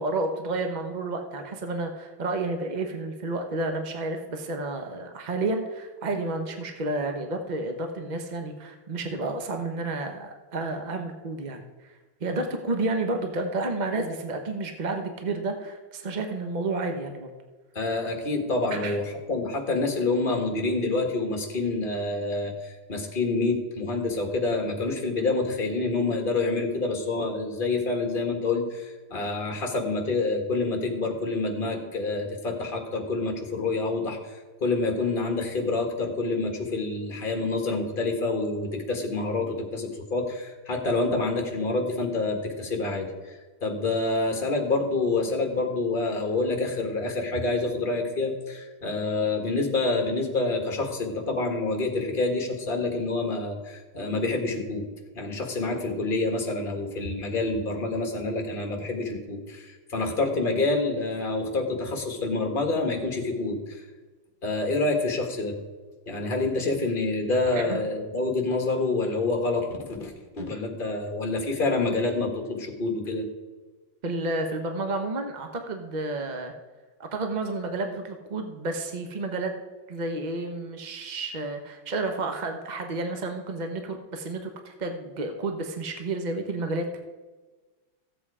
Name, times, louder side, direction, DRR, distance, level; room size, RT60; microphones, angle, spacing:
voice 1, 0.0-17.3 18.7-19.0 67.5-67.8 74.0-76.5 77.0-79.5 79.9-87.0, right 2 dB, 55° right, 5 dB, 0.5 m, -31 dB
voice 2, 17.7-43.1 43.6-54.9 55.1-63.8 64.4-65.5 66.1-73.2, left 3 dB, 25° left, 3 dB, 1.6 m, -27 dB
15.0 x 7.8 x 4.8 m, 1.3 s
omnidirectional pair, 2.4 m